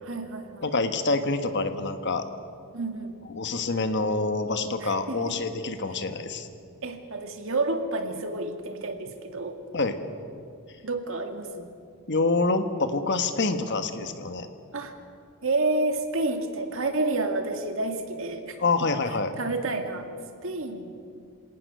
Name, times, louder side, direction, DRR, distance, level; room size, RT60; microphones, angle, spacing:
voice 1, 0.0-0.7 2.7-3.2 4.8-5.4 6.8-9.6 10.8-11.7 14.7-15.0 15.4-18.9 19.4-20.1 20.4-20.9, right 2 dB, 65° right, 5 dB, 2.1 m, -30 dB
voice 2, 0.6-2.2 3.3-6.5 9.7-10.0 12.1-14.5 18.6-19.3, left 3 dB, 55° left, 8 dB, 1.4 m, -26 dB
26.5 x 18.0 x 6.8 m, 2.3 s
head